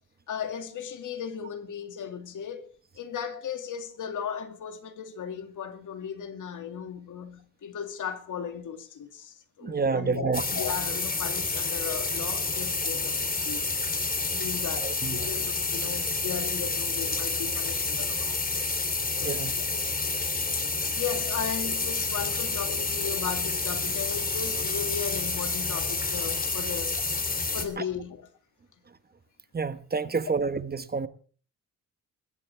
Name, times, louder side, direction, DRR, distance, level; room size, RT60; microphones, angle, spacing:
voice 1, 0.3-2.7 2.9-13.6 14.3-18.4 19.1-20.0 20.3-27.0 27.5-28.3, left 7 dB, 75° left, 2.3 m, -36 dB
voice 2, 9.6-10.4 14.8-15.2 19.2-19.5 29.5-31.1, right 4 dB, 30° right, 1.2 m, -28 dB
sound 1, 10.3-27.7, left 3 dB, 30° left, 3.0 m, -29 dB
21.0 x 17.0 x 3.4 m
cardioid pair, 110°, 31 cm